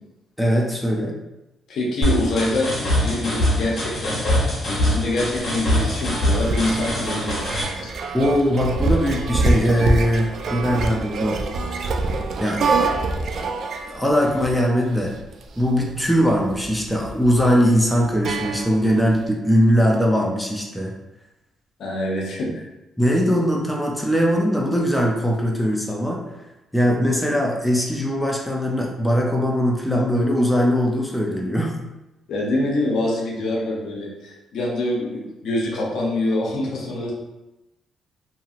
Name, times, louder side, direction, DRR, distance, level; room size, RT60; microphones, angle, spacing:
voice 1, 0.4-1.1 8.1-11.4 12.4-12.9 13.9-15.1 15.6-20.9 23.0-26.2 26.7-31.7, equal, ahead, -1 dB, 0.5 m, -20 dB
voice 2, 1.7-7.9 21.8-22.6 32.3-37.1, left 1 dB, 70° left, -2 dB, 0.7 m, -25 dB
sound 1, 2.0-7.6, left 1 dB, 45° left, 1.3 m, -23 dB
sound 2, 5.2-19.1, right 3 dB, 60° right, 0.3 m, -26 dB
2.9 x 2.6 x 2.4 m, 0.98 s
cardioid pair, 90°, 0 cm